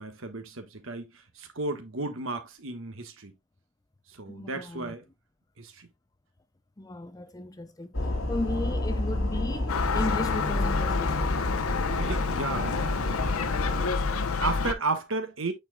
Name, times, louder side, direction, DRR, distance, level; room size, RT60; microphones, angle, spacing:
voice 1, 0.0-3.3 4.1-5.0 5.6-5.9 11.9-13.4 13.9-15.5, right 3 dB, 65° right, 1.3 m, -34 dB
voice 2, 4.3-4.9 6.8-7.9 8.3-11.3, left 2 dB, 15° left, 0.5 m, -35 dB
sound 1, 7.9-13.9, left 1 dB, 70° left, 2.5 m, -30 dB
Gull seagull, 9.7-14.7, left 4 dB, 90° left, 0.7 m, -28 dB
8.8 x 4.7 x 2.2 m
head